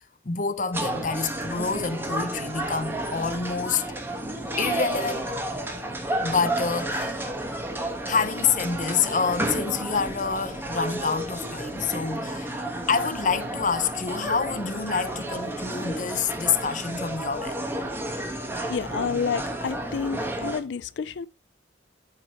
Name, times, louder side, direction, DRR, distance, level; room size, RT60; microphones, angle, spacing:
voice 1, 0.0-3.9 4.6-5.4 6.2-7.2 8.0-17.6, left 5 dB, 45° left, 0.7 m, -27 dB
sound 1, 0.7-20.6, right 1 dB, 10° right, 1.2 m, -31 dB
voice 2, 18.7-21.3, left 6 dB, 75° left, 0.4 m, -29 dB
13.5 x 4.8 x 2.9 m
head